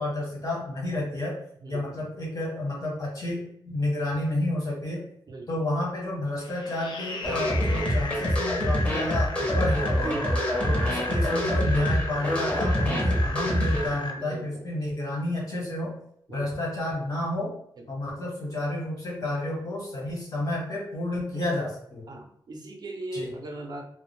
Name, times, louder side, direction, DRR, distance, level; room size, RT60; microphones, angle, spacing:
voice 1, 0.0-1.4 1.7-5.1 5.5-10.2 10.6-16.0 16.3-17.5 17.9-22.0 23.1-23.3, left 1 dB, 50° left, -3 dB, 1.0 m, -30 dB
voice 2, 1.6-2.0 5.3-5.5 8.1-8.3 10.0-10.6 13.3-13.6 14.2-14.7 16.3-16.5 17.8-17.9 21.3-21.4 22.1-23.8, right 2 dB, 55° right, 1 dB, 0.5 m, -39 dB
sound 1, 6.4-14.1, left 2 dB, 75° left, 0.4 m, -35 dB
sound 2, 7.2-13.9, equal, 15° left, 0.6 m, -26 dB
2.4 x 2.0 x 3.0 m, 0.69 s
wide cardioid pair, 155°, 8 cm